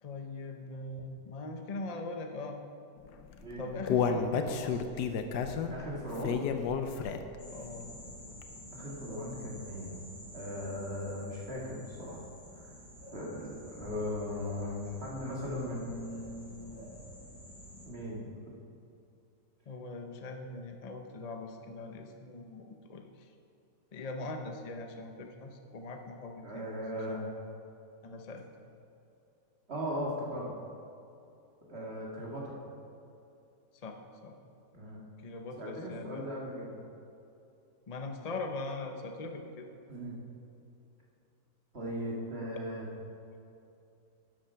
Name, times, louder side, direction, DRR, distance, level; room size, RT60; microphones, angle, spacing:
voice 1, 0.0-2.7 3.6-4.8 7.5-7.9 19.7-23.3 23.9-26.8 27.1-27.3 28.0-28.4 33.8-34.4 35.2-36.3 37.9-39.7, left 3 dB, 50° left, 4 dB, 0.4 m, -41 dB
Human voice, 3.3-7.4 7.8-7.9 8.4-8.5, left 6 dB, 75° left, 1.3 m, -31 dB
voice 2, 5.7-6.4 8.7-10.0 10.3-12.2 12.6-12.7 13.1-16.9 17.8-18.3 26.4-27.3 29.7-30.5 31.7-32.6 34.7-35.0 35.6-36.8 39.9-40.2 41.7-42.9, equal, 35° right, -3 dB, 2.3 m, -38 dB
sound 1, 7.4-17.9, equal, 20° left, 1.9 m, -49 dB
12.0 x 7.8 x 5.7 m, 2.7 s
omnidirectional pair, 1.8 m